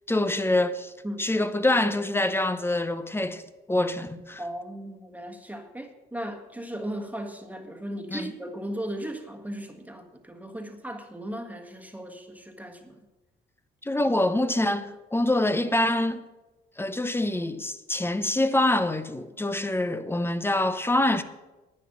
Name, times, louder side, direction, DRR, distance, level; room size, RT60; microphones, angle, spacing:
voice 1, 0.1-0.9 1.2-3.4 3.7-4.4 8.1-8.3 13.8-16.2 16.8-21.2, left 1 dB, 10° left, 0.7 m, -25 dB
voice 2, 4.4-13.0, right 1 dB, 10° right, 1.5 m, -37 dB
10.5 x 9.2 x 6.0 m
cardioid pair, 90°, 20 cm